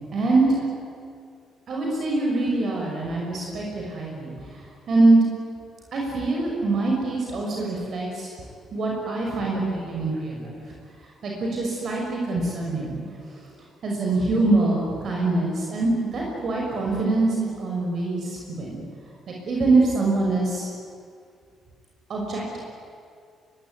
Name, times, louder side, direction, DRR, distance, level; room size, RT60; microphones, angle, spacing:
voice 1, 0.1-0.6 1.7-5.2 5.9-8.3 8.7-10.5 11.2-13.0 13.3-13.4 13.8-18.8 19.5-20.7 22.1-22.6, right 2 dB, 60° right, -1 dB, 6.5 m, -24 dB
23.5 x 23.0 x 9.6 m, 2.3 s
cardioid pair, 90°, 0 cm